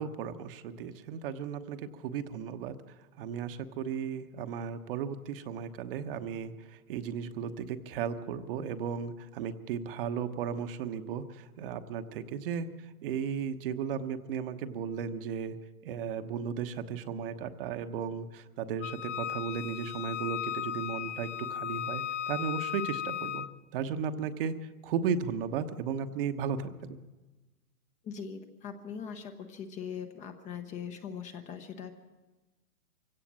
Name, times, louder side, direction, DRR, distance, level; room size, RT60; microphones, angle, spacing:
voice 1, 0.0-15.6 15.8-23.5 23.7-27.0, right 7 dB, 35° right, 9 dB, 1.1 m, -35 dB
Wind instrument woodwind instrument, 18.8-23.5, left 10 dB, 50° left, 0.9 m, -36 dB
voice 2, 28.0-31.9, left 7 dB, 15° left, 7 dB, 0.9 m, -41 dB
23.5 x 16.5 x 7.4 m, 1.2 s
hypercardioid pair, 135°, 45 cm